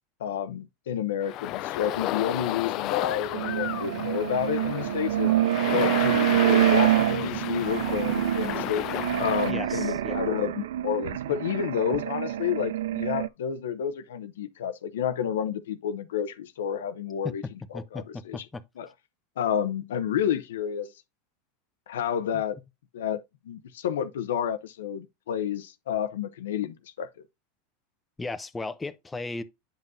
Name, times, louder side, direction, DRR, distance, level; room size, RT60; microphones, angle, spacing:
voice 1, 0.2-5.3 5.7-17.4 17.9-18.4 18.8-18.9 19.4-20.9 21.9-22.6 22.9-23.2 23.5-27.1, left 9 dB, 85° left, 0.7 m, -30 dB
sound 1, 1.2-9.5, left 15 dB, 50° left, 0.4 m, -33 dB
sound 2, 3.3-13.3, right 13 dB, 80° right, 0.3 m, -26 dB
voice 2, 9.5-10.2 17.2-17.3 17.7-18.6 22.3-22.4 28.2-29.4, left 3 dB, 15° left, 0.7 m, -36 dB
8.9 x 5.5 x 2.6 m
hypercardioid pair, 110°, 0 cm